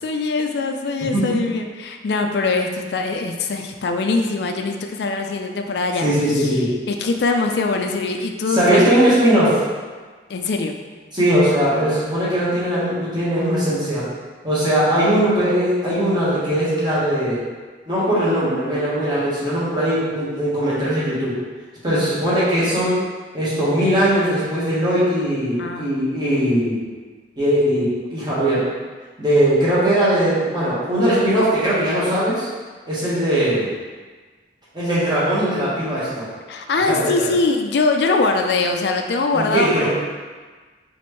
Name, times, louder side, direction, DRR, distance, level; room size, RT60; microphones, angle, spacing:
voice 1, 0.0-6.0 6.4-6.5 6.9-8.9 10.3-10.7 21.9-22.1 25.6-25.9 36.5-39.9, left 3 dB, 65° left, 4 dB, 0.4 m, -22 dB
voice 2, 6.0-6.7 8.5-9.6 11.1-14.0 14.4-17.4 17.9-21.4 21.8-23.0 23.3-26.8 27.4-28.6 29.2-32.5 32.9-33.7 34.7-36.2 36.9-37.3 39.3-39.9, right 1 dB, 25° right, -10 dB, 1.4 m, -19 dB
4.3 x 3.2 x 3.1 m, 1.4 s
head